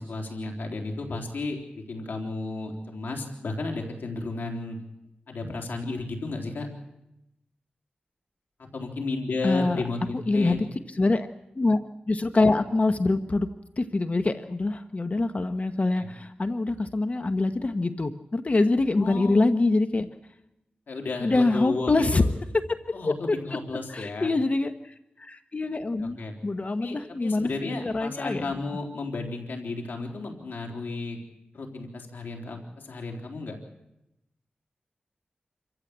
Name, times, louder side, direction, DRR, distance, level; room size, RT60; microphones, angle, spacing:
voice 1, 0.0-4.8 5.3-6.7 8.7-10.6 15.9-16.1 19.0-19.4 20.9-22.3 22.9-24.3 26.0-26.3 26.8-31.2 31.5-33.6, left 3 dB, 90° left, 2 dB, 3.7 m, -33 dB
voice 2, 9.4-9.8 10.3-10.6 11.0-11.3 11.5-11.8 12.1-13.5 13.8-20.1 21.2-22.2 22.5-23.4 23.9-26.2 26.4-28.5, left 2 dB, 45° left, 9 dB, 1.1 m, -25 dB
27.0 x 15.0 x 8.1 m, 0.89 s
wide cardioid pair, 60°, 3 cm